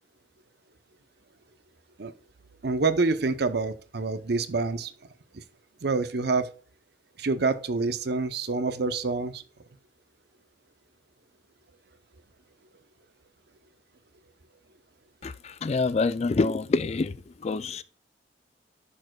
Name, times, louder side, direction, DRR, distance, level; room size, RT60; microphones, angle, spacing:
voice 1, 2.6-4.9 5.3-5.4 5.8-6.5 7.2-9.4, right 3 dB, 60° right, 0.7 m, -27 dB
voice 2, 15.2-17.2 17.4-17.8, left 3 dB, 35° left, 0.4 m, -26 dB
11.0 x 6.5 x 2.3 m
head